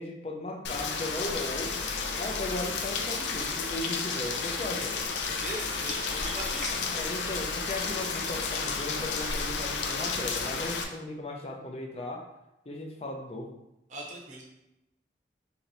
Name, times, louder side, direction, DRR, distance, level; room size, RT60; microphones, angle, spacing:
voice 1, 0.0-1.8 2.2-5.0 6.9-12.2 12.7-13.5, left 2 dB, 35° left, 1 dB, 0.5 m, -37 dB
Rain, 0.6-10.8, left 4 dB, 90° left, 0.5 m, -32 dB
voice 2, 5.4-6.8 13.9-14.4, right 1 dB, 45° right, -3 dB, 0.7 m, -39 dB
3.1 x 2.8 x 3.9 m, 0.88 s
head